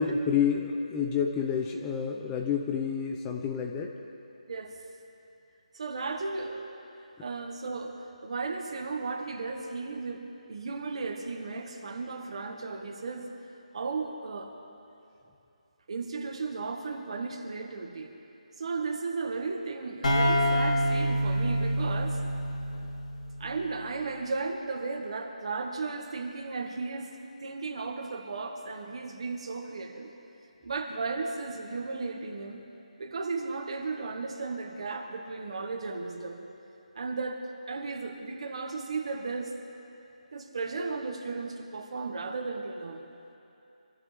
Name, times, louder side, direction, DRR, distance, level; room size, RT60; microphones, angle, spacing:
voice 1, 0.0-3.9, left 6 dB, 10° left, 2 dB, 0.6 m, -29 dB
voice 2, 5.7-6.8 7.2-10.2 10.5-13.3 13.7-14.5 15.9-18.1 18.6-22.2 23.4-27.1 27.4-30.1 30.6-32.6 33.0-36.5 37.0-39.6 40.3-43.0, right 4 dB, 50° right, 4 dB, 1.8 m, -35 dB
sound 1, 20.0-23.7, equal, 65° left, 3.8 m, -27 dB
26.5 x 14.5 x 3.5 m, 2.8 s
figure-of-eight pair, 165°, 4 cm